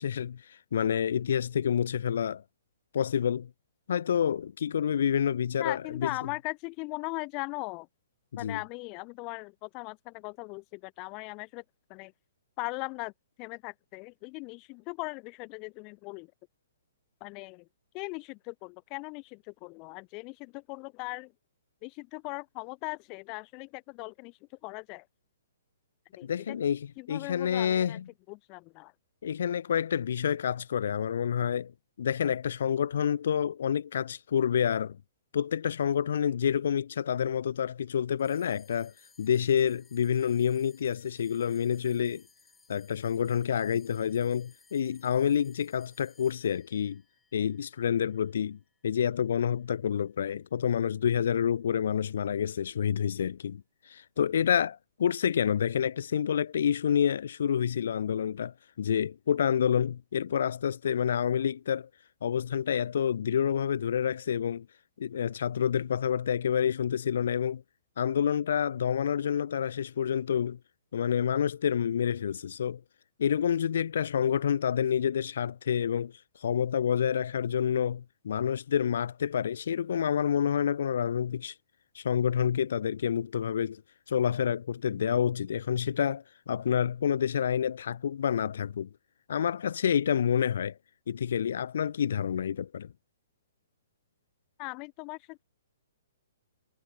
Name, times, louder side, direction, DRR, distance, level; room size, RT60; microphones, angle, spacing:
voice 1, 0.0-2.4 2.9-3.5 3.9-6.1 8.3-8.6 26.2-28.0 29.2-31.7 32.0-35.0 35.3-38.9 39.2-42.2 42.7-47.0 47.3-61.9 62.2-64.7 65.0-67.6 68.0-70.6 70.9-72.8 73.2-76.1 76.4-81.5 81.9-83.8 84.1-88.9 89.3-90.8 91.1-92.9, left 8 dB, 65° left, 0.9 m, -28 dB
voice 2, 5.6-7.9 8.3-11.6 11.9-12.1 12.6-13.1 13.4-16.3 17.2-17.7 17.9-21.3 21.8-25.1 26.2-26.6 27.0-28.0 28.3-28.9 94.6-95.4, left 29 dB, 30° left, 1.0 m, -39 dB
sound 1, 38.2-48.8, left 4 dB, 10° left, 7.6 m, -62 dB
hypercardioid pair, 145°, 0 cm